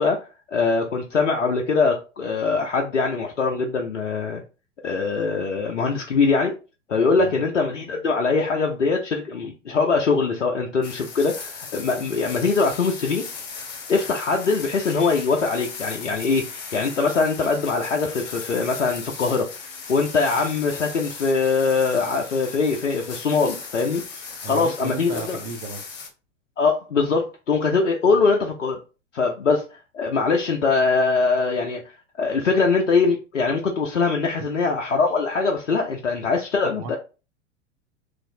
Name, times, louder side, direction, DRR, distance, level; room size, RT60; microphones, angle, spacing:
voice 1, 0.0-4.4 4.8-6.5 6.9-13.3 13.9-19.5 19.9-25.4 26.6-28.8 29.1-37.0, left 4 dB, 85° left, 0.6 m, -22 dB
sound 1, 10.8-26.1, left 5 dB, 40° left, 0.9 m, -37 dB
voice 2, 24.4-25.8 28.1-28.3 36.8-37.0, right 4 dB, 35° right, 0.5 m, -34 dB
3.1 x 2.5 x 2.7 m
figure-of-eight pair, 95°, 37 cm